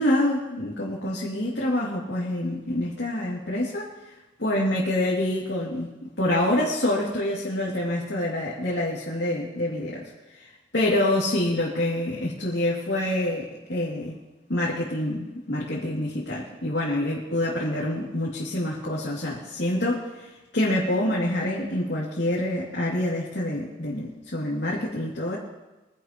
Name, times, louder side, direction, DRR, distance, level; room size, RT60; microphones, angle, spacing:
voice 1, 0.0-3.9 4.4-5.9 6.2-14.1 14.5-25.4, left 1 dB, 70° left, -6 dB, 2.6 m, -26 dB
23.0 x 11.0 x 3.0 m, 1.1 s
head